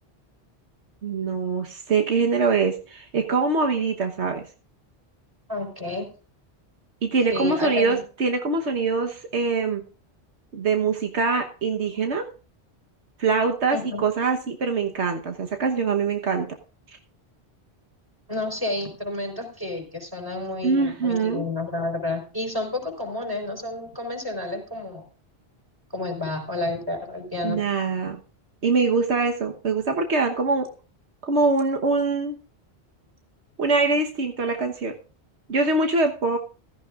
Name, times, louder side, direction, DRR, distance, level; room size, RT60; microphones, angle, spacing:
voice 1, 1.0-4.4 7.0-9.8 10.5-12.3 13.2-16.5 20.6-21.5 27.4-28.2 28.6-30.7 31.2-32.4 33.6-34.9 35.5-36.4, right 4 dB, 80° right, 4 dB, 1.5 m, -23 dB
voice 2, 5.5-6.1 7.3-8.0 13.7-14.0 18.3-25.0 25.9-27.6, left 2 dB, 20° right, 3 dB, 4.3 m, -30 dB
16.0 x 13.5 x 2.5 m, 0.36 s
omnidirectional pair, 1.1 m